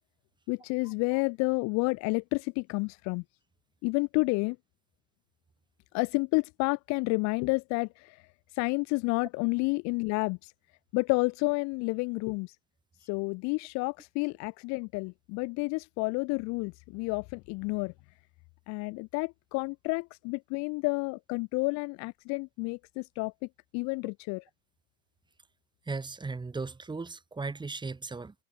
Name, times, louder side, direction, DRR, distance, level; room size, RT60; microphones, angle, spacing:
voice 1, 0.5-3.2 3.8-4.6 5.9-8.2 8.6-10.5 10.9-12.5 13.1-17.9 18.7-23.3 23.7-24.4, left 29 dB, 45° left, 1.0 m, -30 dB
voice 2, 25.9-28.3, right 4 dB, 10° right, 3.2 m, -36 dB
hypercardioid pair, 100°, 38 cm